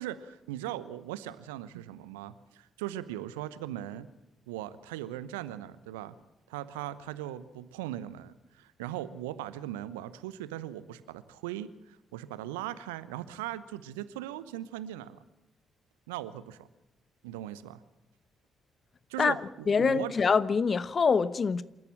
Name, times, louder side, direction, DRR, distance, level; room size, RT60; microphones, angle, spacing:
voice 1, 0.0-4.1 4.5-6.2 6.5-15.2 16.1-16.7 17.2-17.8 19.1-20.1, right 13 dB, 75° right, 0.9 m, -39 dB
voice 2, 19.7-21.6, left 5 dB, 40° left, 1.0 m, -25 dB
27.5 x 14.0 x 7.4 m
figure-of-eight pair, 40°, 0 cm